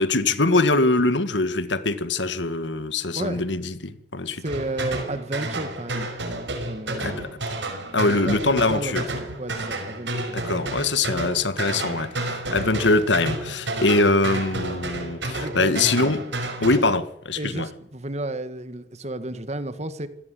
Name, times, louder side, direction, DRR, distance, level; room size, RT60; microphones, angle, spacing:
voice 1, 0.0-4.4 7.0-7.3 7.9-9.1 10.3-16.2 16.6-17.7, left 2 dB, 85° left, 1.8 m, -23 dB
voice 2, 4.4-6.1 6.7-7.3 8.1-10.4 15.4-15.9 17.4-20.1, right 1 dB, 35° right, 1.8 m, -32 dB
sound 1, 4.5-16.8, right 2 dB, 80° right, 5.5 m, -31 dB
26.5 x 17.0 x 7.8 m
head